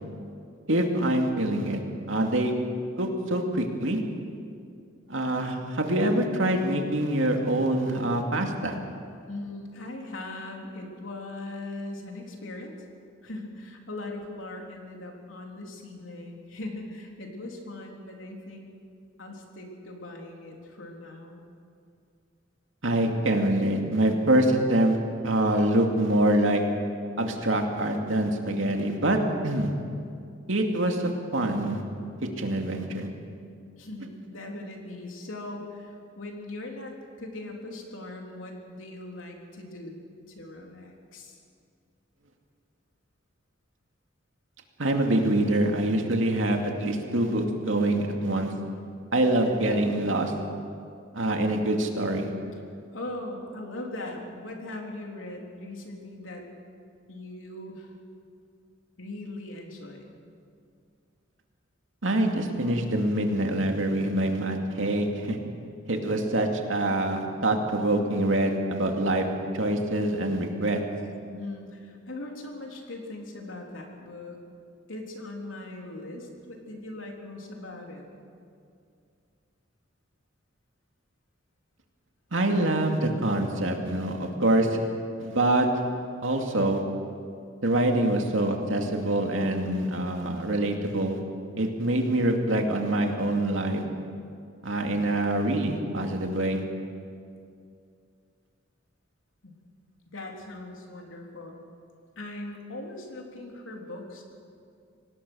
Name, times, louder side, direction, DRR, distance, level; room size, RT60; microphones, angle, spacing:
voice 1, 0.7-1.8 2.1-2.5 3.0-4.0 5.1-8.8 22.8-25.0 25.2-26.6 27.2-29.2 29.4-29.7 30.5-31.8 32.4-33.1 44.8-48.5 49.1-50.3 51.1-52.3 62.0-65.4 65.9-69.3 69.5-70.8 82.3-84.8 85.2-85.7 86.2-86.8 87.6-91.2 91.6-93.8 94.6-96.6, right 1 dB, 75° right, 3 dB, 2.5 m, -25 dB
voice 2, 9.3-12.8 13.2-18.7 19.2-21.4 33.8-41.4 52.9-56.4 57.1-57.9 59.0-60.1 71.3-74.4 74.9-78.1 99.4-99.6 100.1-101.6 102.2-104.2, left 2 dB, 80° left, 1 dB, 3.6 m, -40 dB
25.0 x 18.5 x 6.4 m, 2.4 s
head